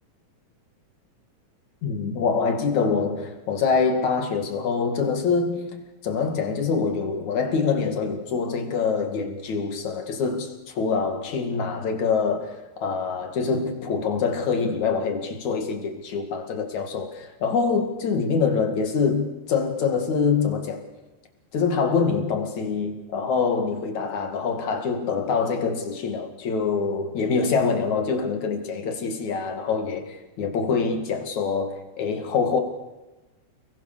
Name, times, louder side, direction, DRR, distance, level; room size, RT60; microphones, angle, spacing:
voice 1, 1.8-20.8 21.5-32.6, left 5 dB, 75° left, 3.7 m, -25 dB
29.5 x 21.5 x 6.8 m
omnidirectional pair, 3.3 m